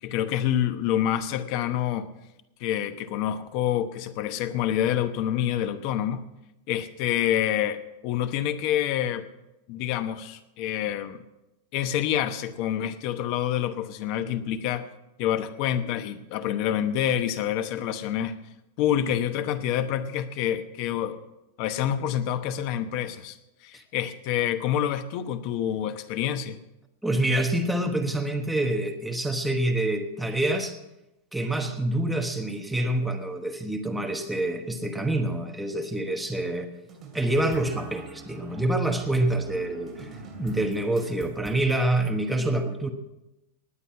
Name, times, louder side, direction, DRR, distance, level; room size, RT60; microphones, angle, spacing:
voice 1, 0.0-2.1 2.6-6.2 6.7-9.3 9.7-11.2 11.7-14.9 15.2-18.4 18.8-21.2 21.6-23.4 23.6-26.6, left 10 dB, 40° left, 10 dB, 1.0 m, -27 dB
voice 2, 27.0-30.8 31.3-36.7 37.1-42.9, right 1 dB, ahead, 4 dB, 1.1 m, -26 dB
sound 1, 36.9-41.8, right 4 dB, 20° right, 2.5 m, -44 dB
19.5 x 8.1 x 5.7 m, 0.94 s
supercardioid pair, 170°, 0 cm